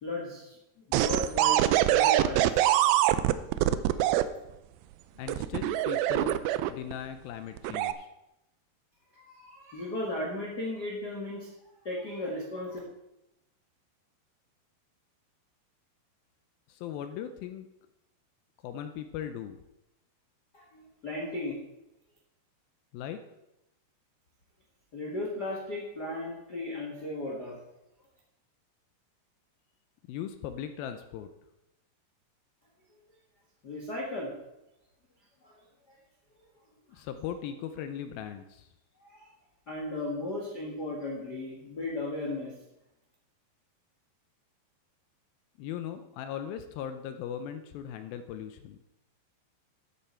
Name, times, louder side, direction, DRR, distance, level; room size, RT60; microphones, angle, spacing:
voice 1, 0.0-2.5 9.1-11.5 11.8-12.8 20.5-21.6 24.9-27.6 33.6-34.3 35.4-35.6 35.9-36.0 36.9-37.0 39.0-39.3 39.7-42.5, left 1 dB, 65° left, -2 dB, 0.9 m, -36 dB
sound 1, 0.9-4.2 5.3-6.9 7.6-7.9, right 13 dB, 90° right, 2.1 m, -24 dB
voice 2, 5.2-6.4 6.7-8.1 16.7-17.7 18.6-19.6 22.9-23.2 30.1-31.3 36.9-38.7 45.6-48.8, left 9 dB, 85° left, 8 dB, 2.1 m, -38 dB
12.5 x 9.0 x 4.3 m, 0.91 s
omnidirectional pair, 4.9 m